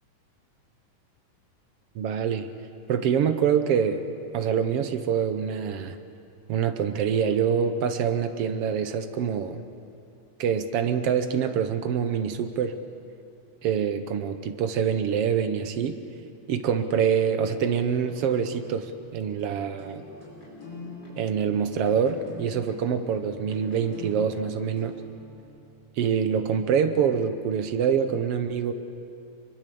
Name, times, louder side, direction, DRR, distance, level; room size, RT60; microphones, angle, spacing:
voice 1, 1.9-2.5 2.9-4.0 4.3-6.0 6.5-9.6 10.4-12.8 13.6-16.0 16.5-20.0 21.2-24.9 26.0-28.7, right 7 dB, 65° right, 9 dB, 1.6 m, -25 dB
sound 1, 18.0-25.7, left 3 dB, 35° left, 5.5 m, -45 dB
24.0 x 22.5 x 6.9 m, 2.6 s
omnidirectional pair, 3.5 m